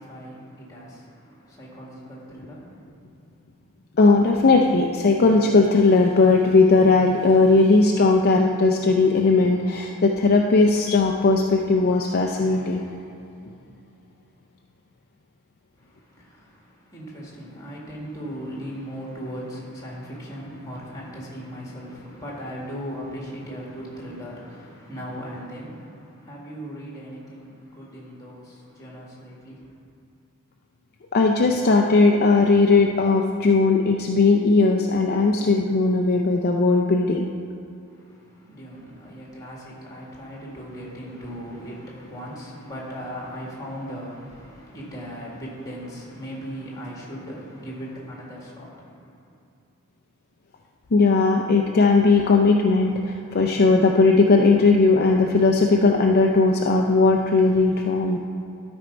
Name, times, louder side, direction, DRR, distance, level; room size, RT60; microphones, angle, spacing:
voice 1, 0.0-2.9 15.7-29.9 37.9-49.4, equal, 15° left, -3 dB, 1.9 m, -38 dB
voice 2, 4.0-12.8 31.1-37.3 50.9-58.2, left 3 dB, 45° left, 2 dB, 0.5 m, -18 dB
12.0 x 4.4 x 5.1 m, 2.7 s
head